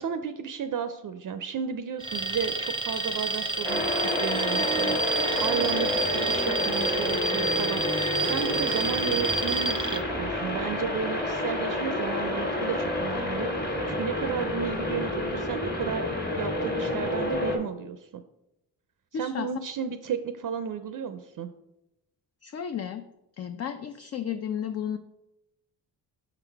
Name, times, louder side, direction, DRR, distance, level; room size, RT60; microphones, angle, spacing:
voice 1, 0.0-16.1 16.3-18.2 19.1-21.5, right 7 dB, 50° right, 9 dB, 0.5 m, -33 dB
Alarm, 2.0-10.0, right 3 dB, 10° right, 0.7 m, -29 dB
sound 1, 3.6-17.6, left 1 dB, 25° left, 1.4 m, -29 dB
voice 2, 19.1-19.5 22.4-23.0 23.4-25.0, left 8 dB, 40° left, 8 dB, 0.4 m, -33 dB
5.7 x 3.8 x 4.5 m, 0.88 s
cardioid pair, 80°, 40 cm